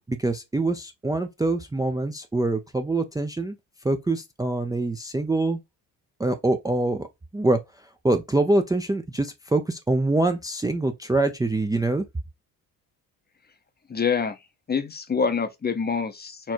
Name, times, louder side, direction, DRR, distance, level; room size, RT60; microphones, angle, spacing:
voice 1, 0.1-3.6 3.8-5.6 6.2-7.1 7.3-7.6 8.0-12.0, right 2 dB, 10° right, 0.5 m, -24 dB
voice 2, 13.9-14.4 14.7-16.5, left 5 dB, 25° left, 0.7 m, -26 dB
4.5 x 2.7 x 4.4 m
cardioid pair, 90°, 40 cm